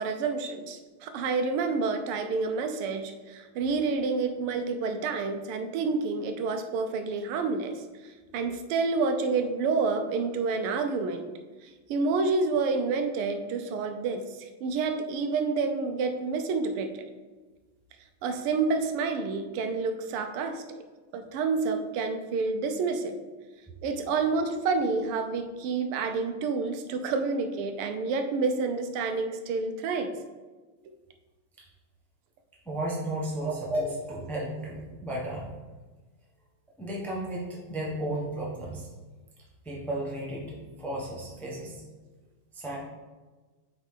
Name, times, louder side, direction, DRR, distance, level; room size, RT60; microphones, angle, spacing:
voice 1, 0.0-11.3 11.6-17.0 18.2-20.6 21.1-23.2 23.8-30.1 33.4-33.6, right 4 dB, 90° right, 7 dB, 1.6 m, -29 dB
voice 2, 32.7-35.5 36.8-38.9 39.6-41.8 42.5-42.8, right 1 dB, ahead, -4 dB, 0.7 m, -33 dB
8.1 x 4.3 x 3.9 m, 1.3 s
omnidirectional pair, 2.4 m